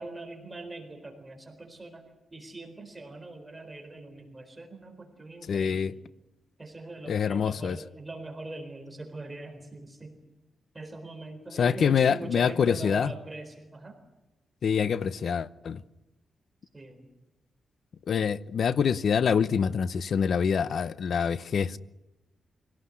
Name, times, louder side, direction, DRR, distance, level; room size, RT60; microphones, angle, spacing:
voice 1, 0.0-2.0 2.3-6.0 6.6-10.1 10.7-13.9 16.7-17.1, right 2 dB, 20° right, 4.2 m, -42 dB
voice 2, 5.5-5.9 7.1-7.8 11.6-13.1 14.6-15.8 18.1-21.8, left 7 dB, 65° left, 0.8 m, -25 dB
26.0 x 17.5 x 9.8 m
wide cardioid pair, 120°, 0 cm